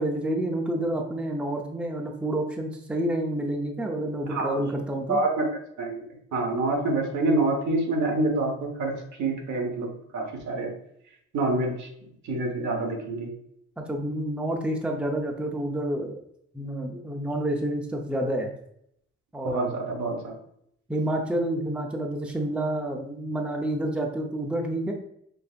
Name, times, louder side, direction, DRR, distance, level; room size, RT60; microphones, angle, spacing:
voice 1, 0.0-5.2 13.8-16.2 16.5-18.5 19.3-19.7 20.9-24.9, right 1 dB, 5° right, 1 dB, 0.7 m, -29 dB
voice 2, 4.3-4.7 5.1-5.5 5.8-6.0 6.3-10.7 11.3-11.9 12.2-13.3 19.4-20.3, right 2 dB, 70° right, 1 dB, 1.2 m, -27 dB
5.2 x 3.4 x 2.5 m, 0.73 s
cardioid pair, 90°, 30 cm